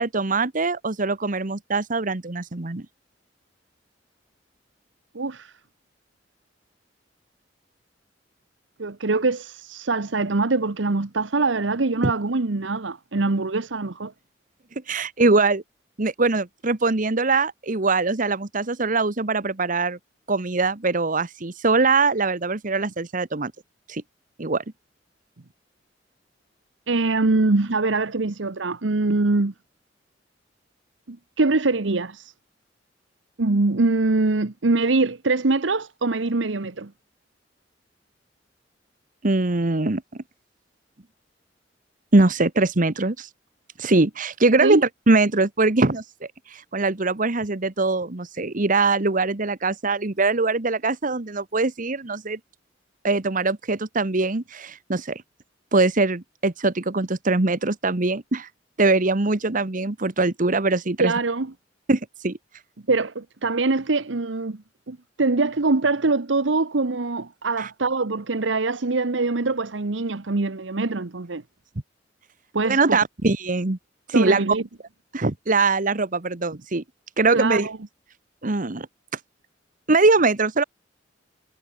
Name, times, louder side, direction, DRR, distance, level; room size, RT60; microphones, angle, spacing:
voice 1, 0.0-2.8 12.0-12.1 14.9-15.6 16.0-20.0 20.3-23.5 23.9-24.0 24.4-24.6 39.2-40.0 42.1-43.3 43.8-52.4 53.0-55.2 55.7-58.5 58.8-61.1 61.9-62.4 67.6-67.7 72.6-73.8 74.1-74.6 75.1-76.8 77.2-77.7 78.4-78.9 79.9-80.6, right 3 dB, 45° right, 1.3 m, -22 dB
voice 2, 5.1-5.5 8.8-14.1 26.9-29.5 31.1-32.3 33.4-36.9 44.6-44.8 61.0-61.5 62.9-64.6 64.9-71.4 72.5-73.0 74.1-74.6 77.3-77.8, right 3 dB, 90° right, 1.1 m, -23 dB
head